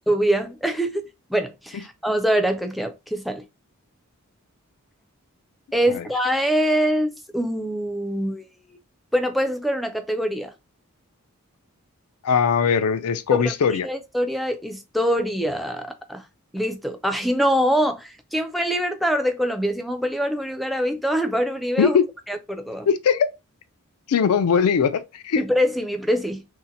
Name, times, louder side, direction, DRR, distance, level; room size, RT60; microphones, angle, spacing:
voice 1, 0.1-3.4 5.7-8.5 9.1-10.5 13.3-13.5 13.8-16.2 16.5-22.0 22.3-22.9 25.4-26.5, equal, ahead, 0.3 m, -24 dB
voice 2, 12.2-13.9 21.8-22.0 22.9-23.3 24.1-25.4, left 6 dB, 80° left, 0.4 m, -20 dB
2.7 x 2.1 x 3.8 m
head